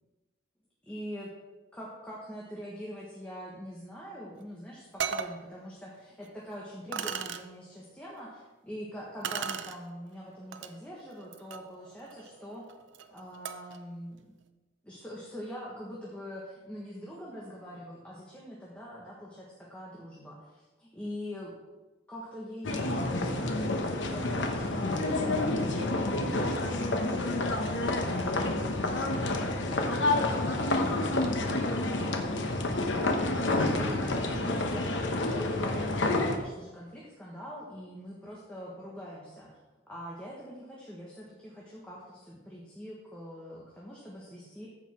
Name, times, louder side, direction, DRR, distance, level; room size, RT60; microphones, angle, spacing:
voice 1, 0.8-1.3 1.7-12.7 13.1-14.3 14.8-21.5 22.1-31.6 31.9-39.5 39.9-44.7, equal, 5° left, -5 dB, 1.5 m, -44 dB
sound 1, 4.4-4.5 5.0-5.4 6.2-6.3 6.9-7.4 9.2-9.8 10.5-10.7 11.2-13.8, right 7 dB, 85° right, 0.6 m, -37 dB
sound 2, 22.6-36.4, left 2 dB, 85° left, 1.1 m, -29 dB
14.5 x 5.6 x 4.5 m, 1.1 s
head